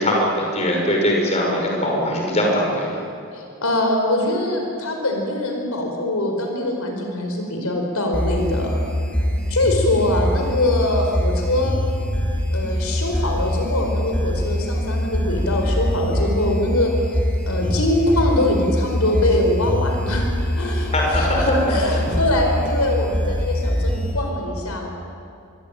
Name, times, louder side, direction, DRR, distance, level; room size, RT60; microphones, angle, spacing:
voice 1, 0.0-3.0 20.9-21.7, equal, 30° left, -1 dB, 6.1 m, -21 dB
voice 2, 3.3-8.8 9.5-11.8 12.5-17.2 17.5-24.9, left 1 dB, 80° left, 2 dB, 4.7 m, -23 dB
sound 1, 8.1-24.1, equal, 5° left, 4.0 m, -23 dB
27.5 x 23.0 x 9.1 m, 2.6 s
head